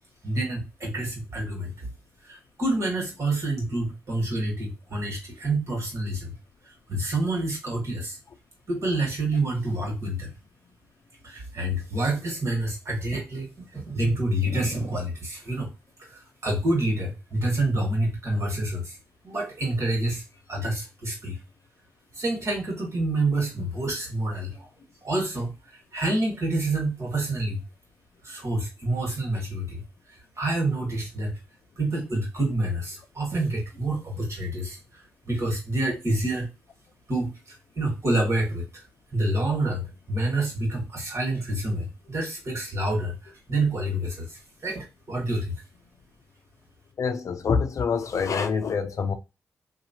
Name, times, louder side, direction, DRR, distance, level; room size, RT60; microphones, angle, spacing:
voice 1, 0.2-1.8 2.2-6.3 6.9-8.2 8.7-10.3 11.2-13.5 13.7-15.7 16.0-19.0 19.2-20.2 20.5-21.4 22.1-24.7 25.0-27.6 28.2-29.8 30.4-31.4 31.8-36.5 37.1-38.8 39.1-45.5, right 1 dB, 50° right, 1.6 m, -28 dB
voice 2, 47.0-49.1, left 5 dB, 60° left, 0.5 m, -26 dB
2.8 x 2.3 x 2.8 m
supercardioid pair, 45°, 6 cm